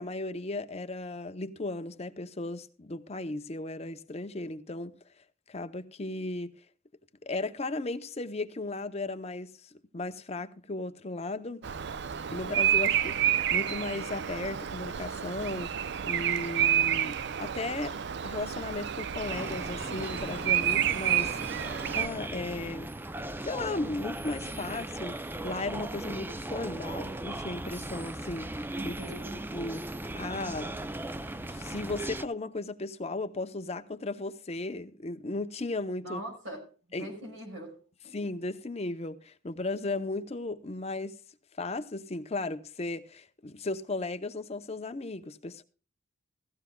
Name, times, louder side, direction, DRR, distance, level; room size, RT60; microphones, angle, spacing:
voice 1, 0.0-4.9 5.5-6.5 7.2-11.6 12.3-17.9 18.2-22.9 23.5-28.9 29.5-30.8 31.4-36.2 36.9-37.1 38.1-41.2 41.6-45.6, left 2 dB, 35° left, 0.7 m, -36 dB
Bird vocalization bird call bird song, 11.6-22.1, right 10 dB, 60° right, 0.5 m, -29 dB
sound 1, 19.2-32.2, right 1 dB, 10° right, 0.5 m, -38 dB
voice 2, 28.8-29.5 36.0-36.6 36.9-37.8 38.0-38.1, equal, 80° right, 5.9 m, -41 dB
17.0 x 15.0 x 2.3 m
head